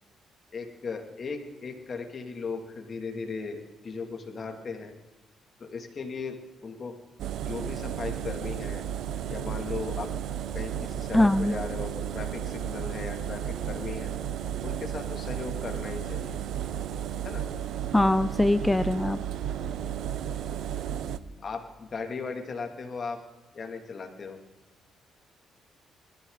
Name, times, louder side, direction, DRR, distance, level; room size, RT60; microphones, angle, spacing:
voice 1, 0.5-3.6 3.8-4.9 5.6-7.0 7.4-8.8 9.3-10.1 10.5-14.1 14.6-16.4 17.2-17.5 21.4-23.2 23.5-24.4, left 4 dB, 45° left, 4 dB, 2.8 m, -37 dB
Engine, 7.2-21.2, right 9 dB, 75° right, 0.7 m, -33 dB
voice 2, 11.1-11.6 17.9-19.2, left 1 dB, 10° left, 13 dB, 0.5 m, -22 dB
20.5 x 14.5 x 4.1 m, 1.1 s
cardioid pair, 90°, 0 cm